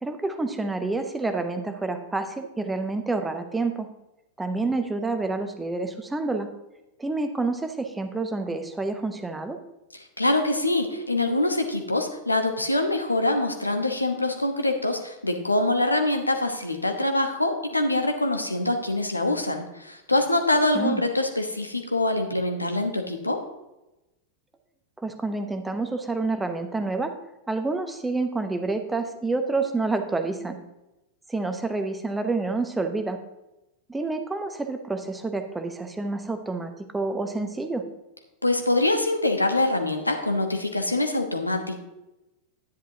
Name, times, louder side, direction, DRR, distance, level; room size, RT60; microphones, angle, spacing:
voice 1, 0.0-3.9 4.4-6.5 7.0-9.6 20.7-21.0 25.0-27.1 27.5-30.6 31.3-33.2 33.9-37.8, right 3 dB, 10° right, 7 dB, 0.8 m, -28 dB
voice 2, 10.2-23.4 38.4-41.8, left 2 dB, 85° left, 5 dB, 1.1 m, -24 dB
10.5 x 10.0 x 2.8 m, 0.97 s
figure-of-eight pair, 90°, 0 cm